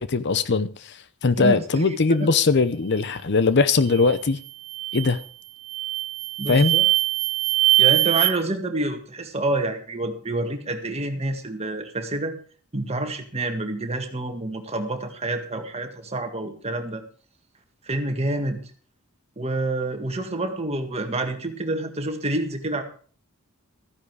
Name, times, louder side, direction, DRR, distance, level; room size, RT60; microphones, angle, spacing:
voice 1, 0.1-4.4 4.9-5.2 6.5-6.8, left 4 dB, 50° left, 0.7 m, -20 dB
voice 2, 1.4-2.0 6.4-6.9 7.8-12.4 12.7-17.0 17.9-18.6 19.4-22.8, right 2 dB, 30° right, 1.8 m, -28 dB
sound 1, 3.9-4.2 4.7-5.2 5.7-8.3, right 16 dB, 80° right, 1.1 m, -22 dB
14.0 x 10.0 x 4.8 m
head